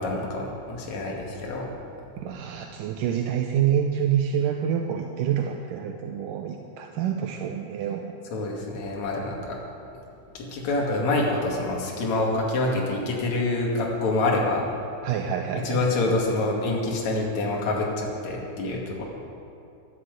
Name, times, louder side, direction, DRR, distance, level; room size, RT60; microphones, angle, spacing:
voice 1, 0.0-1.7 8.3-9.6 10.3-14.6 15.6-19.0, left 2 dB, 50° left, -2 dB, 3.1 m, -26 dB
voice 2, 2.2-8.1 15.0-15.8, right 9 dB, 80° right, 3 dB, 1.9 m, -27 dB
11.5 x 11.5 x 8.0 m, 2.5 s
omnidirectional pair, 4.6 m